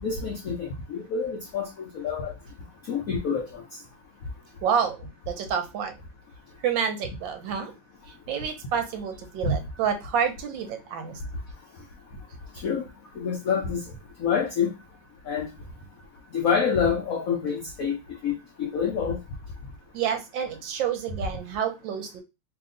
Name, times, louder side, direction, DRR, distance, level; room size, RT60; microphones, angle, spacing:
voice 1, 0.0-1.7 1.9-2.3 2.9-3.6 9.4-9.5 12.6-12.9 13.2-13.9 14.2-14.7 15.3-15.5 16.3-18.0 18.2-19.2, left 6 dB, 75° left, 0.7 m, -27 dB
voice 2, 4.6-6.0 6.6-7.7 8.1-11.2 19.9-22.2, right 7 dB, 75° right, 1.2 m, -29 dB
3.0 x 2.9 x 3.7 m
omnidirectional pair, 2.3 m